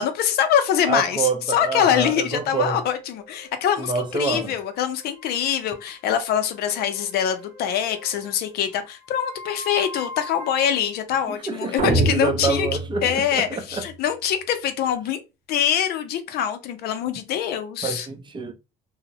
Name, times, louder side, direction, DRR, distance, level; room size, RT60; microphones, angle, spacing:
voice 1, 0.0-12.7 13.0-15.2 15.5-18.1, left 9 dB, 70° left, 0.5 m, -24 dB
voice 2, 0.9-2.8 3.8-4.5 11.3-13.8 17.8-18.5, right 4 dB, 30° right, 0.5 m, -27 dB
sound 1, 2.8-10.9, left 1 dB, 85° right, 0.9 m, -43 dB
sound 2, 11.8-13.9, right 2 dB, 55° right, 0.9 m, -26 dB
2.7 x 2.0 x 2.8 m
cardioid pair, 110°, 17 cm